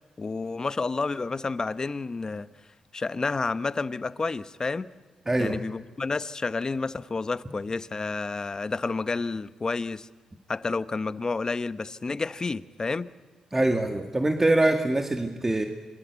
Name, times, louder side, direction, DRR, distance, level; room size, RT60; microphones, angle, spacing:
voice 1, 0.2-2.5 2.9-4.9 5.4-10.1 10.5-13.1, left 3 dB, 35° left, 14 dB, 1.0 m, -30 dB
voice 2, 5.3-5.6 13.5-15.7, right 2 dB, 20° right, 4 dB, 2.1 m, -24 dB
27.0 x 23.0 x 8.3 m, 1.3 s
cardioid pair, 70°, 2 cm